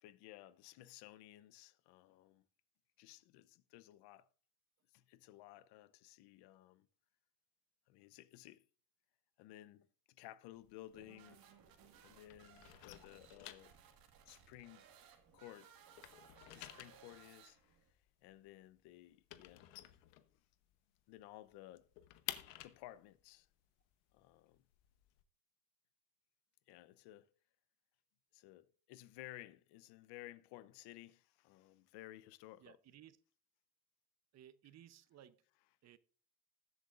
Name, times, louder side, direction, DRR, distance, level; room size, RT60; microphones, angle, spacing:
voice 1, 0.0-2.5 3.0-4.3 4.9-6.9 7.9-8.7 9.4-11.4 12.0-13.7 14.2-14.9 15.3-15.7 16.5-17.8 18.2-19.7 21.1-21.9 22.6-23.5 24.1-24.6 26.7-27.3 28.3-32.8, left 15 dB, 70° left, 0.8 m, -56 dB
sound 1, 10.5-12.0 12.2-15.5 15.8-20.8 21.1-21.2 21.5-25.2, left 15 dB, 90° left, 1.1 m, -52 dB
sound 2, 10.9-17.9, right 8 dB, 55° right, 1.9 m, -63 dB
voice 2, 32.6-33.2 34.3-35.4 35.8-36.0, right 11 dB, 40° right, 0.7 m, -59 dB
20.0 x 7.9 x 2.5 m
cardioid pair, 130°, 41 cm